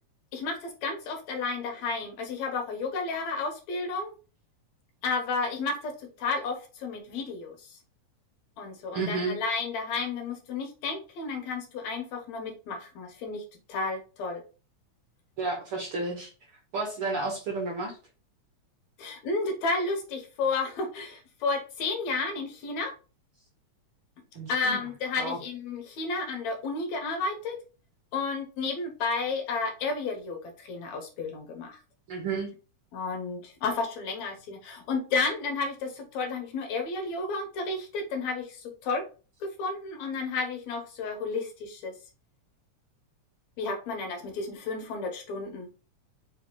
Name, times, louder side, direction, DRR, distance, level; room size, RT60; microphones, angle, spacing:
voice 1, 0.3-4.1 5.0-5.9 6.2-7.6 8.6-13.4 13.7-14.4 19.0-22.9 24.5-27.6 28.1-31.8 32.9-39.0 39.4-41.9 43.6-45.8, left 3 dB, 70° left, 4 dB, 2.1 m, -32 dB
voice 2, 8.9-9.4 15.4-16.3 16.7-18.0 24.3-24.8 25.2-25.4 32.1-32.5, right 3 dB, 60° right, -1 dB, 1.5 m, -31 dB
4.7 x 3.4 x 3.3 m, 0.33 s
omnidirectional pair, 3.5 m